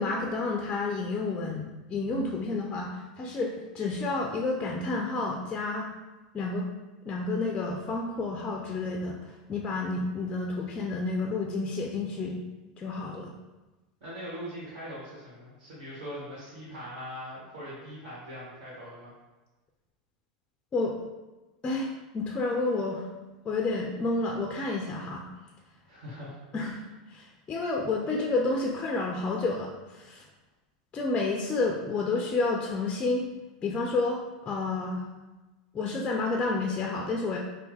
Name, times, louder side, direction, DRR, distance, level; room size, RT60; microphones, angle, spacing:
voice 1, 0.0-5.9 6.3-6.7 7.1-12.4 12.8-13.3 20.7-21.0 21.6-23.1 23.4-25.3 26.5-26.8 27.1-30.3 30.9-33.2 33.6-35.1 35.7-37.4, left 3 dB, 25° left, 0 dB, 0.4 m, -30 dB
voice 2, 14.0-19.1 25.9-26.4, equal, 65° right, -8 dB, 1.5 m, -41 dB
3.3 x 2.2 x 3.2 m, 1.1 s
hypercardioid pair, 110°, 4 cm